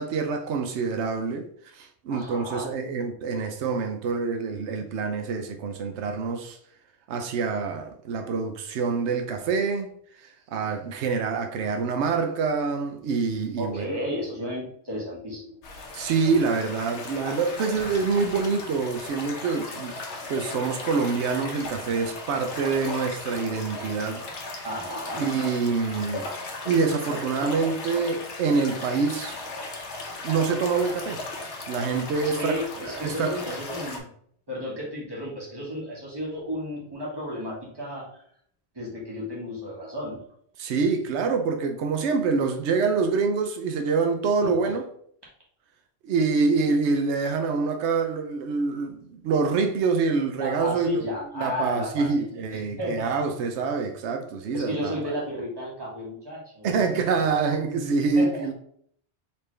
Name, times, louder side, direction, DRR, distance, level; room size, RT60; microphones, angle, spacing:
voice 1, 0.0-1.5 1.7-6.6 7.1-9.9 10.2-14.0 15.9-19.9 20.3-24.2 24.6-24.7 25.2-26.3 26.6-29.4 30.2-31.2 31.7-33.4 40.6-44.9 46.0-51.0 51.4-55.0 56.6-58.5, right 4 dB, 90° right, 0.9 m, -26 dB
voice 2, 2.1-2.7 13.6-15.6 24.6-25.2 32.2-34.1 34.5-38.1 38.7-40.2 44.4-44.5 50.4-52.2 52.5-53.1 54.5-57.4 58.1-58.5, equal, 20° right, 1.6 m, -33 dB
sound 1, 15.6-34.0, left 2 dB, 90° left, 1.1 m, -36 dB
4.2 x 3.4 x 3.2 m
omnidirectional pair, 1.1 m